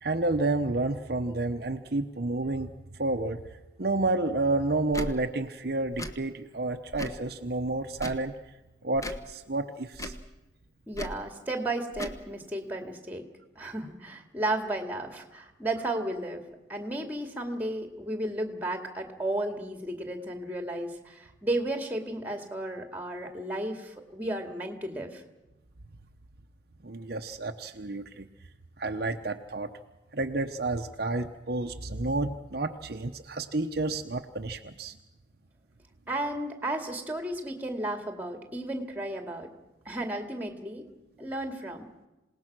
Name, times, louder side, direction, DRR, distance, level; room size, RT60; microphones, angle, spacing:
voice 1, 0.0-2.7 3.0-3.4 3.8-8.3 8.8-10.1 26.8-28.3 28.8-29.7 30.1-35.0, right 2 dB, 55° right, 5 dB, 0.9 m, -30 dB
Tick / Tick-tock, 4.9-5.1 5.9-6.2 6.9-7.2 7.9-8.3 8.9-9.2 9.9-10.2 10.9-11.2 11.9-12.2, equal, 15° left, 1.1 m, -37 dB
voice 2, 10.9-13.3 13.6-16.4 16.7-25.2 36.1-39.5 39.9-40.9 41.2-41.9, right 1 dB, 10° right, 5 dB, 2.2 m, -33 dB
27.5 x 18.5 x 6.1 m, 1.0 s
head